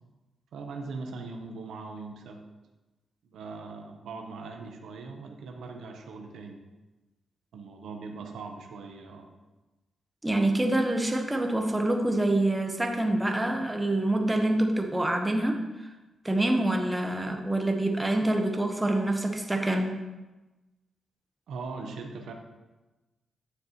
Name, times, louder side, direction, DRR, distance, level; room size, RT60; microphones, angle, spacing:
voice 1, 0.5-2.5 3.2-6.6 7.5-9.3 21.5-22.3, right 4 dB, 80° right, 3 dB, 0.8 m, -40 dB
voice 2, 10.2-15.6 16.2-19.9, right 1 dB, 15° right, 3 dB, 1.0 m, -26 dB
9.2 x 6.6 x 2.9 m, 1.1 s
cardioid pair, 65°, 0 cm